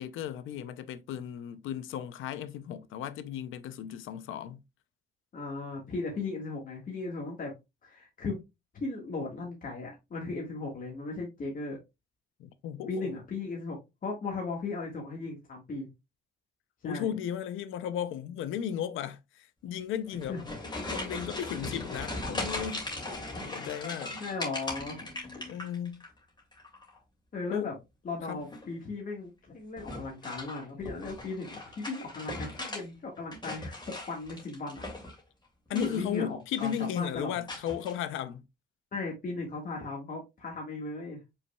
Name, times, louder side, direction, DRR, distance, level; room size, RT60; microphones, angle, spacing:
voice 1, 0.0-4.6 12.4-13.1 16.8-20.4 20.9-22.9 23.5-24.2 25.5-26.0 27.5-27.7 28.3-28.5 35.7-38.4, left 9 dB, 85° left, 0.6 m, -35 dB
voice 2, 5.3-7.5 7.8-8.4 8.8-11.8 12.9-15.9 16.8-17.1 20.3-20.5 24.2-25.1 27.3-27.7 28.0-34.8 35.7-37.4 38.9-41.2, left 3 dB, 45° left, 1.7 m, -37 dB
sound 1, 20.1-26.1 26.4-27.0 28.4-28.8 29.8-32.8 33.2-35.2 35.7-36.3 36.5-37.0 37.5-37.9, left 2 dB, 20° left, 2.4 m, -39 dB
5.5 x 4.0 x 2.3 m
cardioid pair, 90°, 20 cm